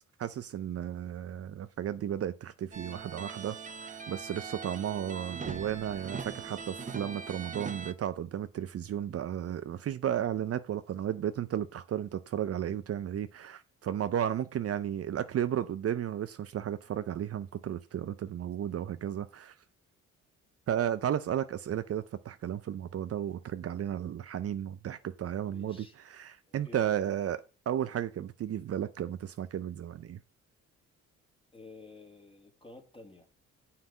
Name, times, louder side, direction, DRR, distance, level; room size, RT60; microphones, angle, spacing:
voice 1, 0.2-19.6 20.7-30.2, right 10 dB, 50° right, 0.7 m, -34 dB
sound 1, 2.7-7.9, right 5 dB, 25° right, 1.1 m, -41 dB
voice 2, 25.4-25.9 26.4-27.2 31.5-33.3, left 3 dB, 20° left, 2.9 m, -51 dB
7.7 x 5.8 x 7.3 m
cardioid pair, 90°, 30 cm